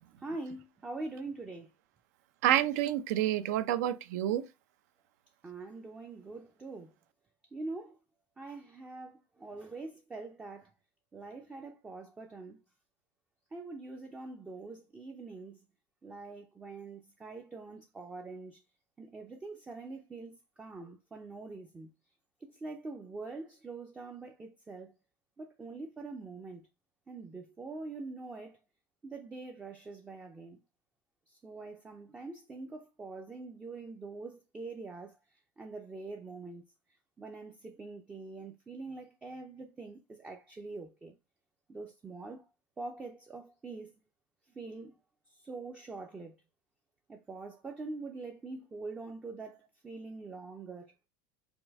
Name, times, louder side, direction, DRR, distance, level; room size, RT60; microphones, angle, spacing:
voice 1, 0.2-1.7 5.4-6.9 7.5-8.0 8.4-10.7 11.1-12.6 13.5-15.6 16.0-18.6 19.0-21.9 22.4-24.9 25.4-26.6 27.1-28.6 29.0-30.6 31.3-35.2 35.6-36.6 37.2-41.1 41.7-42.5 42.8-43.9 44.5-45.0 45.3-46.3 47.1-50.9, right 3 dB, 10° right, 0.4 m, -44 dB
voice 2, 2.4-4.4, right 12 dB, 80° right, 0.6 m, -28 dB
5.2 x 2.6 x 3.4 m
cardioid pair, 165°, 9 cm